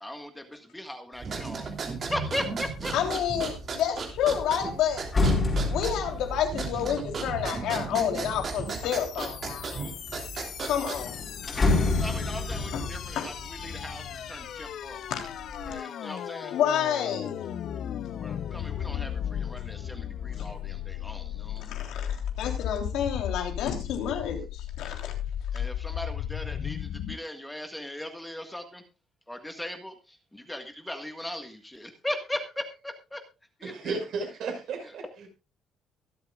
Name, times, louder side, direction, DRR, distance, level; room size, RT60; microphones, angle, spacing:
voice 1, 0.0-2.9 9.7-10.0 10.8-10.9 12.0-15.0 15.7-16.6 18.2-21.8 25.5-28.8 29.3-33.2 33.6-34.0 34.8-34.9, left 1 dB, 5° left, 6 dB, 1.7 m, -38 dB
sound 1, 1.2-11.3, right 4 dB, 40° right, 3.1 m, -35 dB
sound 2, 2.7-3.1 3.4-8.8 9.4-10.1 10.4-10.5 10.8-14.7 15.1-15.7, left 2 dB, 25° left, 4.5 m, -29 dB
voice 2, 2.9-5.3 5.7-9.7 10.6-11.2 12.7-12.8 13.2-13.3 15.1-15.3 16.5-17.5 21.6-25.1, left 9 dB, 80° left, 3 dB, 3.3 m, -29 dB
sound 3, 8.2-27.2, left 10 dB, 60° left, 0.7 m, -36 dB
voice 3, 33.6-35.3, right 4 dB, 65° right, 2 dB, 5.5 m, -34 dB
23.5 x 8.0 x 2.4 m, 0.29 s
cardioid pair, 135°, 0 cm